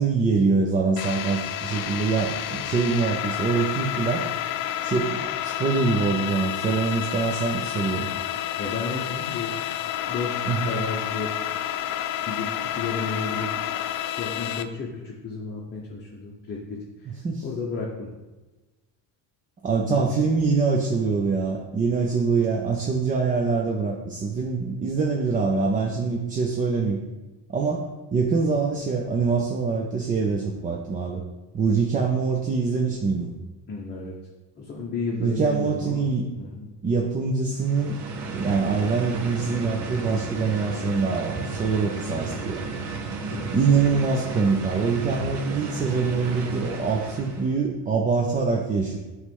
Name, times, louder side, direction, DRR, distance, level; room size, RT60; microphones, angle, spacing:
voice 1, 0.0-4.2 4.8-8.1 10.5-10.7 17.1-17.4 19.6-27.0 27.5-27.8 28.1-31.2 31.5-33.3 35.2-36.3 36.8-38.0 38.3-42.6 43.5-49.0, right 4 dB, 20° right, 0 dB, 0.4 m, -24 dB
sound 1, 1.0-14.6, left 11 dB, 50° left, 0.5 m, -30 dB
voice 2, 8.6-9.5 10.1-11.3 12.2-12.5 12.8-13.5 13.9-17.1 17.4-18.1 19.8-20.1 33.7-34.1 34.6-36.0 36.3-36.7 43.3-43.6, left 4 dB, 20° left, -3 dB, 0.9 m, -32 dB
sound 2, 37.5-47.6, right 4 dB, 65° right, 1.1 m, -33 dB
8.0 x 3.3 x 5.3 m, 1.2 s
cardioid pair, 145°, 46 cm